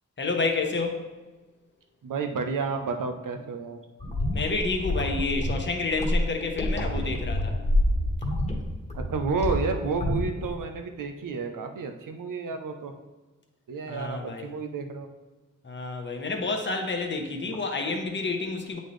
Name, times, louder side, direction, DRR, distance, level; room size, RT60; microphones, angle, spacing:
voice 1, 0.2-1.0 4.3-7.6 13.9-14.5 15.6-18.8, left 3 dB, 35° left, 3 dB, 0.9 m, -29 dB
voice 2, 2.0-3.8 8.9-12.9 13.7-15.1 17.5-17.6, right 4 dB, 90° right, 6 dB, 0.7 m, -31 dB
sound 1, 4.0-10.5, left 1 dB, 20° left, 1.3 m, -27 dB
8.2 x 4.2 x 3.1 m, 1.2 s
cardioid pair, 70°, 31 cm